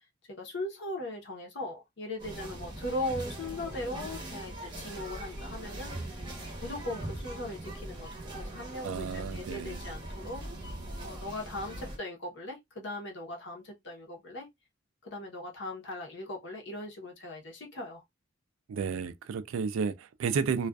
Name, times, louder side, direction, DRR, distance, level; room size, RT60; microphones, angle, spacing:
voice 1, 0.3-6.2 6.6-10.5 11.0-14.5 15.0-18.0, left 1 dB, 60° left, 0.8 m, -39 dB
sound 1, 2.2-12.0, right 1 dB, 25° right, 0.7 m, -41 dB
voice 2, 8.8-9.9 18.7-20.7, right 5 dB, 85° right, 0.3 m, -32 dB
2.4 x 2.3 x 2.2 m
head